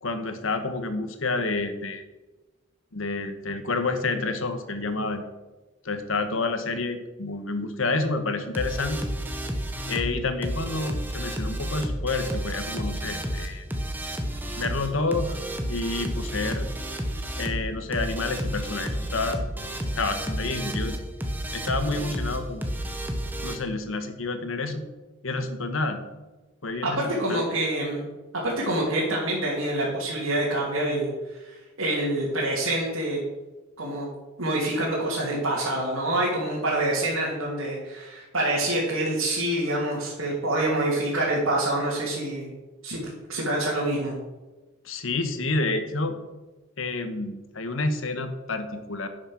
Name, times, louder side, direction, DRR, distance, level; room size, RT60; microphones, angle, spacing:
voice 1, 0.0-2.0 2.9-5.3 5.8-9.0 9.9-13.6 14.6-15.4 15.7-16.7 17.4-19.4 19.9-21.0 21.5-22.6 23.4-24.9 25.2-26.0 26.6-27.0 27.3-27.4 44.8-46.2 46.8-49.1, left 3 dB, 80° left, 8 dB, 1.2 m, -29 dB
sound 1, 8.5-23.6, equal, 10° right, 1.1 m, -31 dB
voice 2, 26.8-28.1 28.4-33.2 33.8-34.1 34.4-42.5 42.8-43.0 43.3-44.1, right 1 dB, 90° right, -6 dB, 2.6 m, -26 dB
10.5 x 6.5 x 6.3 m, 1.2 s
head